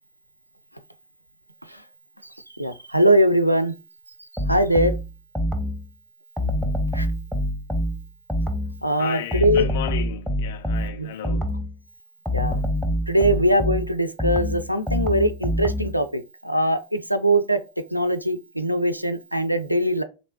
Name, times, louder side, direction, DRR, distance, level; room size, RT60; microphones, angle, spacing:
voice 1, 2.5-3.7 4.3-4.9 6.9-7.1 8.8-9.7 11.0-11.4 12.3-12.6 13.1-17.6 17.9-20.0, right 1 dB, 90° right, 0.3 m, -21 dB
sound 1, 4.4-5.9 6.4-8.8 9.3-11.8 12.3-16.0, equal, ahead, 0.5 m, -26 dB
voice 2, 9.0-11.5, left 11 dB, 55° left, 0.3 m, -34 dB
3.1 x 2.9 x 2.7 m
figure-of-eight pair, 90°, 0 cm